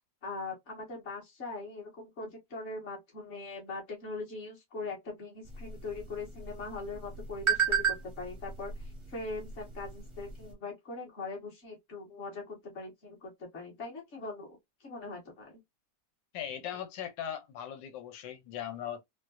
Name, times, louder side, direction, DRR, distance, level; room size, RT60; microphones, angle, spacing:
voice 1, 0.2-15.6, left 3 dB, 40° left, 1.7 m, -41 dB
sound 1, 5.4-10.5, right 7 dB, 25° right, 0.6 m, -35 dB
voice 2, 16.3-19.0, left 9 dB, 90° left, 1.4 m, -39 dB
4.4 x 2.1 x 2.4 m
omnidirectional pair, 1.9 m